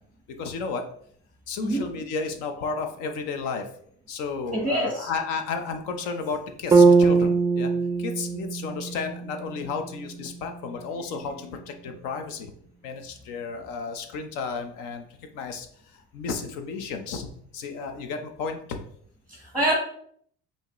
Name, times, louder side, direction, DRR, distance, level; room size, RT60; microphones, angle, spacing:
voice 1, 0.3-0.9 1.5-3.8 4.1-7.7 8.0-12.5 12.8-17.3 17.5-18.8, left 5 dB, 75° left, 6 dB, 0.9 m, -33 dB
voice 2, 4.5-5.1 19.3-19.7, right 1 dB, 5° left, -3 dB, 1.0 m, -25 dB
sound 1, 6.7-10.8, right 4 dB, 10° right, 0.4 m, -22 dB
5.6 x 2.9 x 3.0 m, 0.63 s
cardioid pair, 125°, 31 cm